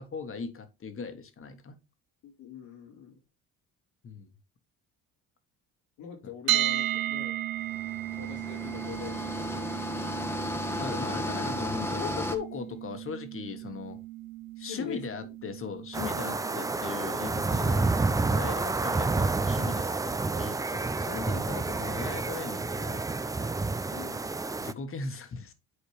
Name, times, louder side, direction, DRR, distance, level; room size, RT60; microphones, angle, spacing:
voice 1, 0.0-1.8 4.0-4.3 6.2-6.3 10.8-14.0 14.6-23.0 24.6-25.5, left 5 dB, 40° left, 1.4 m, -39 dB
voice 2, 2.2-3.2 6.0-7.4 8.1-10.5 14.6-15.3 23.9-24.3, left 8 dB, 85° left, 2.5 m, -44 dB
sound 1, 6.5-18.4, right 13 dB, 75° right, 1.3 m, -35 dB
sound 2, 7.7-12.4, left 1 dB, 5° left, 1.1 m, -34 dB
sound 3, 15.9-24.7, right 3 dB, 10° right, 0.4 m, -29 dB
9.8 x 4.3 x 3.3 m
cardioid pair, 90°, 35 cm